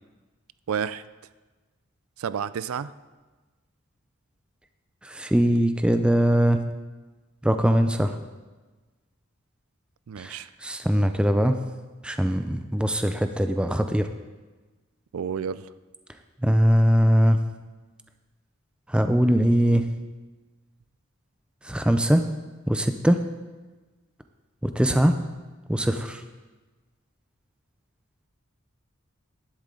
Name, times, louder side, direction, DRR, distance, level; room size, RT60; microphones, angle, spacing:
voice 1, 0.7-1.0 2.2-2.9 10.1-10.5 15.1-15.7, right 7 dB, 85° right, 16 dB, 0.4 m, -30 dB
voice 2, 5.0-6.6 7.4-8.1 10.2-11.6 12.0-14.1 16.4-17.4 18.9-19.8 21.6-22.2 22.7-23.2 24.6-25.1 25.7-26.2, equal, 5° right, 7 dB, 0.4 m, -21 dB
11.5 x 10.5 x 3.8 m, 1.3 s
head